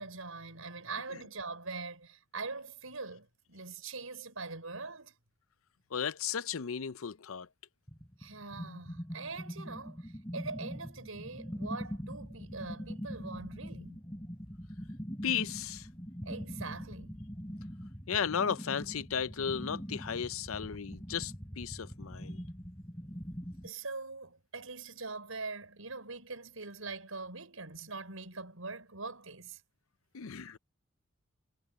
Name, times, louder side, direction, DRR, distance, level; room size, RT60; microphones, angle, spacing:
voice 1, 0.0-5.1 8.2-14.0 16.2-17.2 23.6-29.6, right 3 dB, 90° right, 6.1 m, -43 dB
voice 2, 5.9-7.5 15.2-15.9 18.1-22.4 30.1-30.6, left 7 dB, 85° left, 0.6 m, -35 dB
sound 1, 7.9-23.7, equal, 15° left, 4.1 m, -43 dB
head